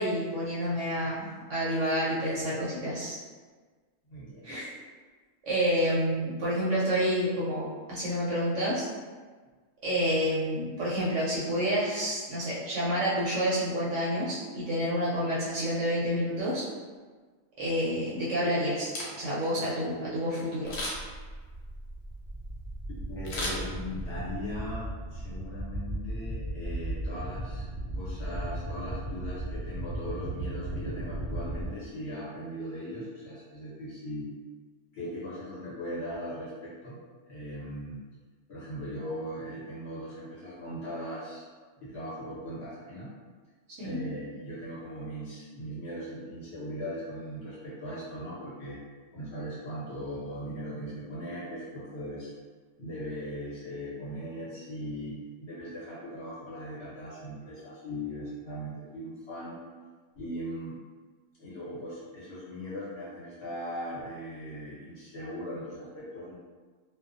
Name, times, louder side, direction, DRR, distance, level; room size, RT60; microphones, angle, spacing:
voice 1, 0.0-3.2 4.4-4.6 5.4-8.9 9.8-16.7 17.6-18.9 19.2-20.7 43.8-44.0, equal, 65° right, -8 dB, 0.8 m, -29 dB
voice 2, 4.1-4.6 23.1-27.7 27.9-34.3 34.9-37.0 37.3-38.0 38.5-41.5 41.8-43.1 43.8-48.8 49.1-52.3 52.8-59.6 60.1-60.7 61.4-66.3, equal, 50° left, -10 dB, 1.0 m, -39 dB
Camera, 18.8-19.5 20.6-21.2 23.2-24.2 24.6-24.7, left 1 dB, 80° left, 1.2 m, -36 dB
sound 1, 20.7-31.7, right 1 dB, 20° right, 0.6 m, -36 dB
2.4 x 2.2 x 2.5 m, 1.4 s
omnidirectional pair, 1.6 m